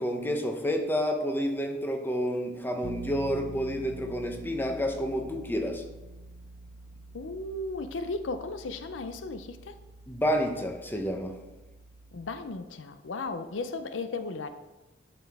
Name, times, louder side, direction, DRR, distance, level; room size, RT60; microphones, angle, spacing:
voice 1, 0.0-5.8 10.1-11.3, equal, 10° left, 4 dB, 0.8 m, -29 dB
Bass guitar, 2.8-12.6, right 2 dB, 90° right, 0.6 m, -46 dB
voice 2, 7.1-9.8 12.1-14.5, left 3 dB, 85° left, 10 dB, 0.6 m, -35 dB
11.0 x 6.0 x 3.5 m, 1.1 s
head